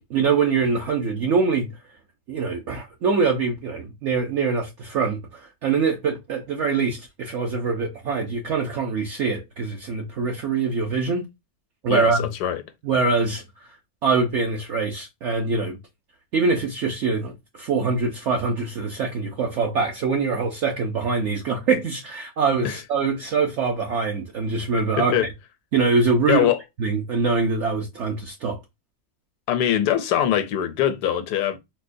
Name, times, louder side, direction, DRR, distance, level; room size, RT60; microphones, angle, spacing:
voice 1, 0.0-1.7 2.3-11.2 11.8-12.3 12.8-15.8 16.3-25.1 25.7-26.5 26.8-28.6, right 4 dB, 60° right, 0.8 m, -24 dB
voice 2, 11.9-12.6 22.6-22.8 25.0-25.3 26.3-26.6 29.5-31.6, left 10 dB, 90° left, 1.2 m, -22 dB
4.2 x 2.2 x 2.5 m
omnidirectional pair, 1.6 m